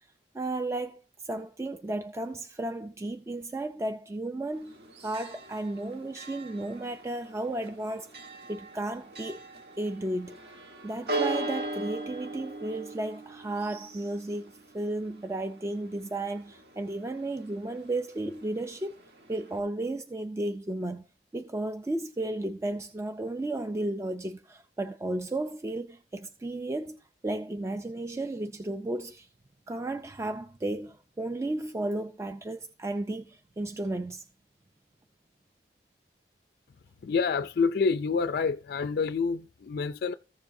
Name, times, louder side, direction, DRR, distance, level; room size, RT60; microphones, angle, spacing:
voice 1, 0.3-4.8 5.0-9.4 9.8-10.4 10.8-19.0 19.3-21.1 21.3-29.3 29.7-34.2, right 2 dB, 15° right, 0.3 m, -34 dB
Church bell, 4.5-19.6, right 2 dB, 60° right, 1.4 m, -40 dB
voice 2, 37.0-40.1, left 5 dB, 55° left, 0.3 m, -27 dB
14.5 x 7.1 x 2.6 m
head